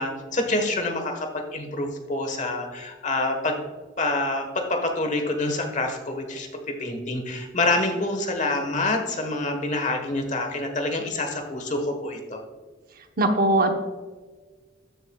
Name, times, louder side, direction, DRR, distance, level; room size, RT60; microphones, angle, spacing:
voice 1, 0.0-3.6 4.0-12.4, left 2 dB, 40° left, 5 dB, 1.2 m, -27 dB
voice 2, 13.2-13.7, right 2 dB, 50° right, 5 dB, 0.9 m, -20 dB
13.0 x 6.6 x 2.3 m, 1.4 s
head